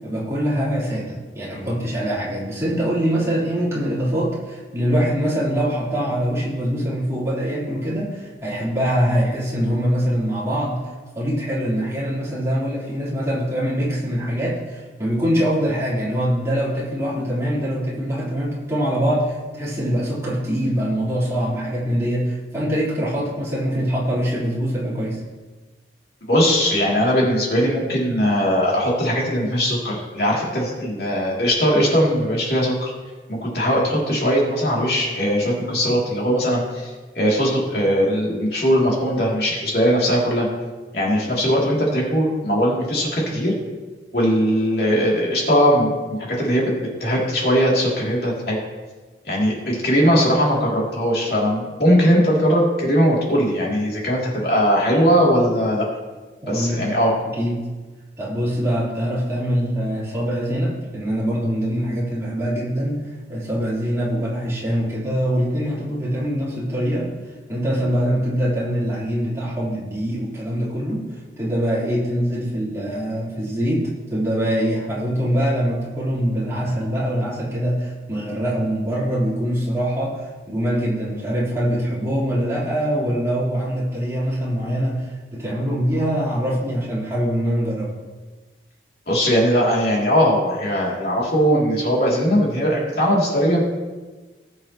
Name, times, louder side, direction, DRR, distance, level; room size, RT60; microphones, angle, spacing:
voice 1, 0.0-10.8 11.2-25.2 56.4-56.8 57.3-57.6 58.2-67.1 67.5-71.0 71.4-87.9, equal, 15° right, -8 dB, 3.6 m, -23 dB
voice 2, 26.2-32.9 33.3-40.5 40.9-43.5 44.1-48.6 49.3-55.9 56.5-57.1 89.1-93.6, equal, 60° left, -4 dB, 2.9 m, -20 dB
19.5 x 7.7 x 3.0 m, 1.3 s
head